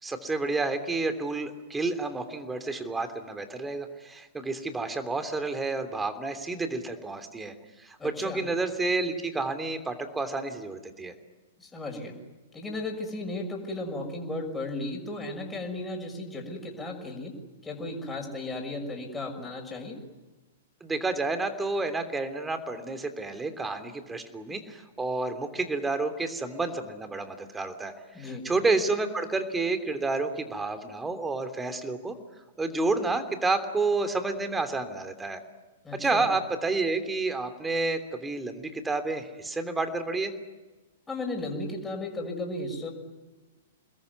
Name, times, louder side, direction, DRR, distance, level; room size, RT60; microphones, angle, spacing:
voice 1, 0.0-7.5 7.8-11.1 20.8-32.1 32.6-35.4 35.9-40.3, right 3 dB, 10° right, 8 dB, 3.2 m, -30 dB
voice 2, 8.0-8.4 11.6-12.1 12.5-17.3 17.6-20.0 28.1-28.4 35.8-36.3 41.1-42.9, left 2 dB, 10° left, 2 dB, 6.4 m, -35 dB
28.5 x 21.0 x 9.6 m, 1.2 s
figure-of-eight pair, 105°, 0 cm